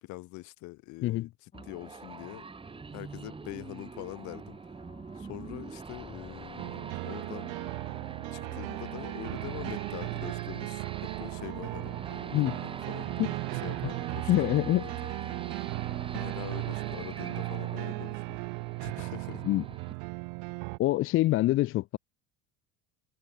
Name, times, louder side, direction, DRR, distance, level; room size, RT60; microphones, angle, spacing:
voice 1, 0.0-2.4 2.9-4.6 5.2-7.5 8.3-15.1 16.2-18.4 18.8-19.4, left 22 dB, 60° left, 2.0 m, -44 dB
sound 1, 1.5-13.5, left 6 dB, 20° left, 6.9 m, -58 dB
sound 2, 1.5-19.9, right 4 dB, 15° right, 3.2 m, -44 dB
sound 3, 6.6-20.8, right 40 dB or more, 75° right, 0.6 m, -36 dB
voice 2, 14.3-14.8 19.4-19.6 20.8-22.0, left 16 dB, 40° left, 0.6 m, -25 dB
cardioid pair, 150°, 33 cm